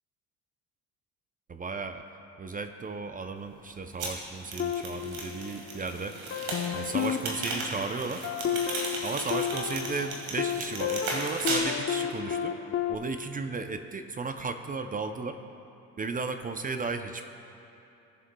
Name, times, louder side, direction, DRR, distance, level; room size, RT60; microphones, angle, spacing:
voice 1, 1.5-2.0 2.4-6.2 6.7-8.3 9.0-12.5 12.9-15.4 16.0-17.2, right 4 dB, 20° right, 8 dB, 0.5 m, -35 dB
sound 1, 4.0-11.6, right 3 dB, 65° right, 1.9 m, -36 dB
sound 2, 4.6-5.9 6.3-12.9, left 8 dB, 35° left, 0.7 m, -32 dB
18.5 x 7.2 x 2.2 m, 2.8 s
hypercardioid pair, 60°, 39 cm